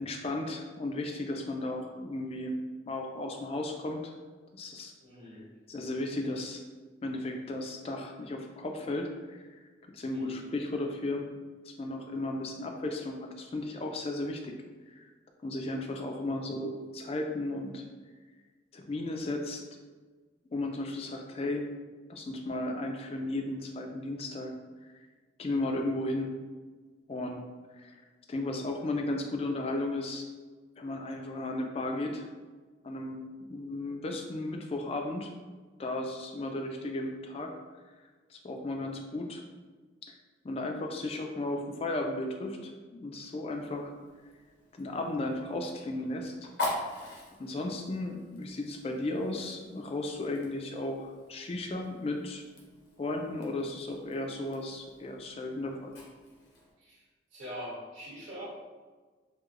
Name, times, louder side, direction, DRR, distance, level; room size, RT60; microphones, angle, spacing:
voice 1, 0.0-2.5 2.9-4.1 4.5-4.9 5.7-6.6 7.0-9.4 9.9-11.3 11.8-14.5 14.9-15.0 15.4-17.8 18.7-19.6 20.5-21.7 22.1-24.5 25.4-26.3 27.1-27.4 27.8-27.9 28.3-30.3 30.8-32.3 32.8-33.2 33.5-35.3 35.8-37.5 38.3-39.4 40.1-40.2 40.4-43.9 44.7-46.5 47.4-52.4 53.0-55.9, left 2 dB, 30° left, 3 dB, 0.3 m, -35 dB
voice 2, 5.0-5.5 10.1-10.4 56.8-57.0 57.3-58.4, equal, 90° right, -8 dB, 1.5 m, -43 dB
Fire, 43.5-56.7, left 2 dB, 85° left, 0.7 m, -44 dB
4.6 x 2.1 x 2.4 m, 1.4 s
head